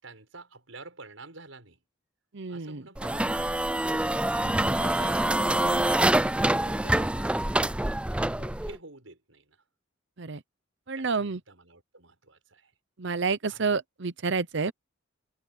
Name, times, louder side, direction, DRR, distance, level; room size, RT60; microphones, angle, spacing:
voice 1, 0.0-1.8 2.5-3.6 4.4-5.3 8.1-9.6 11.0-12.7 13.5-13.8, right 3 dB, 90° right, 6.8 m, -49 dB
voice 2, 2.3-2.8 3.9-4.0 4.4-4.5 5.6-5.8 10.2-10.4 10.9-11.4 13.0-14.7, right 4 dB, 65° right, 0.9 m, -29 dB
sound 1, 3.0-8.8, right 1 dB, 5° right, 0.4 m, -26 dB
head